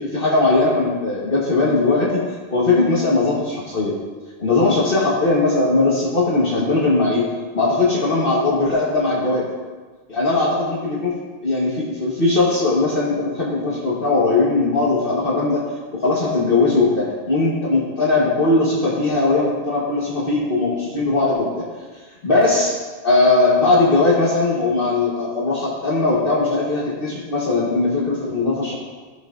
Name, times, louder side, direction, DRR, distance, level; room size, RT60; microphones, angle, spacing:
voice 1, 0.0-2.2 2.5-3.9 4.4-7.2 7.5-9.5 10.1-11.1 11.4-21.7 22.2-22.7 23.0-28.8, left 3 dB, 55° left, -5 dB, 1.5 m, -19 dB
16.0 x 5.7 x 2.5 m, 1.4 s
omnidirectional pair, 1.1 m